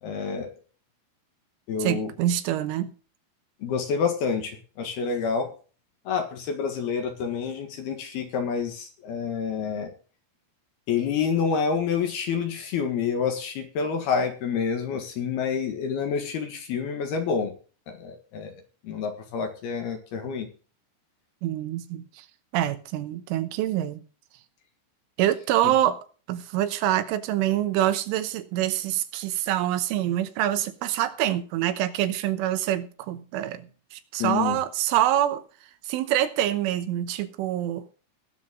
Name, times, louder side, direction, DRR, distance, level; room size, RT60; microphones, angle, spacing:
voice 1, 0.0-0.5 1.7-2.1 3.6-5.5 6.0-9.9 10.9-17.5 17.9-18.6 18.8-20.5 25.6-25.7 34.2-34.6, left 6 dB, 60° left, 3.2 m, -28 dB
voice 2, 1.8-2.9 21.4-22.3 22.5-24.0 25.2-26.0 26.3-35.4 35.8-37.9, right 12 dB, 80° right, 3.4 m, -26 dB
19.5 x 7.3 x 3.8 m
omnidirectional pair, 5.7 m